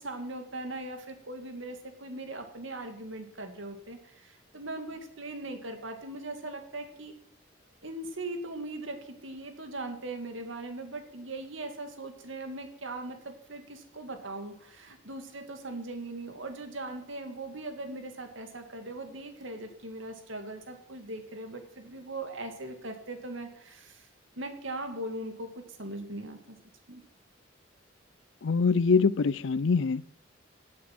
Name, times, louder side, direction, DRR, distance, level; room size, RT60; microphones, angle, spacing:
voice 1, 0.0-7.1 7.8-24.1 24.4-26.6 26.9-27.0, right 2 dB, 75° right, 2.4 m, -40 dB
voice 2, 28.4-30.0, left 4 dB, 65° left, 0.5 m, -24 dB
17.0 x 8.7 x 6.2 m
head